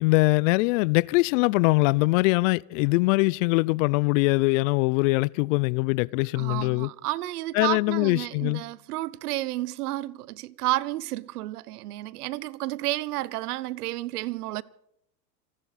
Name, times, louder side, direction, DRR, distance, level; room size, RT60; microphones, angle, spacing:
voice 1, 0.0-6.9 7.5-8.6, left 24 dB, 50° left, 0.6 m, -22 dB
voice 2, 6.4-14.6, right 17 dB, 65° right, 1.0 m, -31 dB
28.0 x 12.0 x 4.2 m
hypercardioid pair, 95°, 49 cm